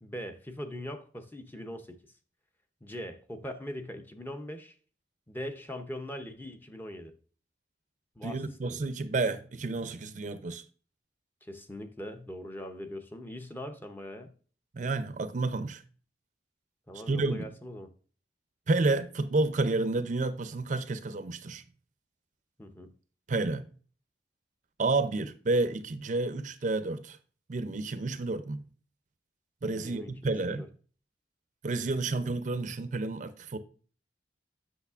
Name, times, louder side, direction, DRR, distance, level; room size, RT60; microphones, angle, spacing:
voice 1, 0.0-2.0 2.8-4.8 5.3-7.1 8.2-8.8 11.4-14.3 16.9-17.9 22.6-22.9 29.8-30.7, left 1 dB, 10° left, 0.6 m, -41 dB
voice 2, 8.2-10.6 14.7-15.8 17.1-17.5 18.7-21.6 23.3-23.7 24.8-27.2 27.5-28.6 29.6-30.6 31.6-33.6, right 3 dB, 45° right, 0.5 m, -30 dB
8.1 x 6.2 x 2.4 m
head